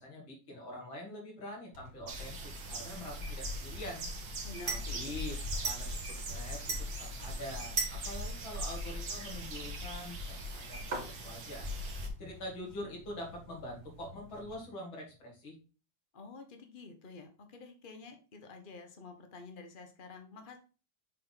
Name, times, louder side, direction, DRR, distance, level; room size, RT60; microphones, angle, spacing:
voice 1, 0.0-4.1 4.6-6.7 7.0-11.7 12.2-15.6, left 1 dB, 85° left, -1 dB, 3.2 m, -45 dB
sound 1, 1.7-14.5, right 3 dB, 35° right, 2.3 m, -44 dB
sound 2, 2.1-12.1, equal, 80° right, 2.3 m, -40 dB
voice 2, 4.4-5.1 16.1-20.6, left 3 dB, 30° left, 5 dB, 1.1 m, -49 dB
7.5 x 3.8 x 4.0 m, 0.34 s
omnidirectional pair, 2.1 m